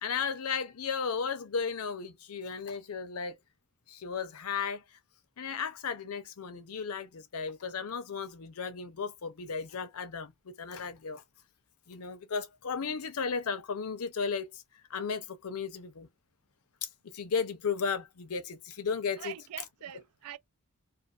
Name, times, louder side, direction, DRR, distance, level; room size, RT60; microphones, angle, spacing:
voice 1, 0.0-3.4 3.9-4.8 5.4-11.2 11.9-14.6 14.9-16.1 16.8-19.4, left 5 dB, 80° left, 0.6 m, -35 dB
voice 2, 19.2-20.4, right 11 dB, 80° right, 0.4 m, -43 dB
2.6 x 2.4 x 2.3 m
head